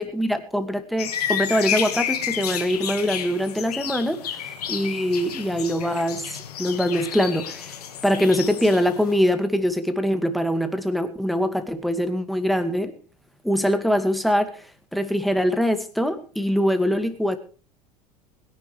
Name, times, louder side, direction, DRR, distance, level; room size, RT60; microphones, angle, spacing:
voice 1, 0.0-7.8 8.0-12.9 13.4-14.6 14.9-17.4, equal, ahead, 8 dB, 2.1 m, -23 dB
sound 1, 1.0-9.3, left 9 dB, 75° left, 1.9 m, -31 dB
21.5 x 10.5 x 3.4 m, 0.38 s
figure-of-eight pair, 75°, 20 cm